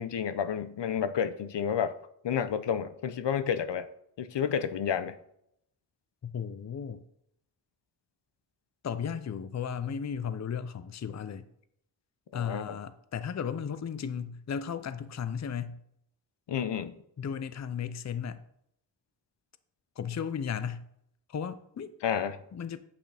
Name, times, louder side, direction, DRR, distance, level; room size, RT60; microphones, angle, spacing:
voice 1, 0.0-2.0 2.2-3.9 4.2-5.2 12.3-12.6 16.5-17.0 22.0-22.4, left 8 dB, 75° left, 0.7 m, -30 dB
voice 2, 6.2-7.0 8.8-11.5 12.3-15.8 17.2-18.4 20.0-20.9 21.3-21.9 22.5-22.8, left 7 dB, 40° left, 0.5 m, -35 dB
8.9 x 8.5 x 3.4 m
wide cardioid pair, 115°, 43 cm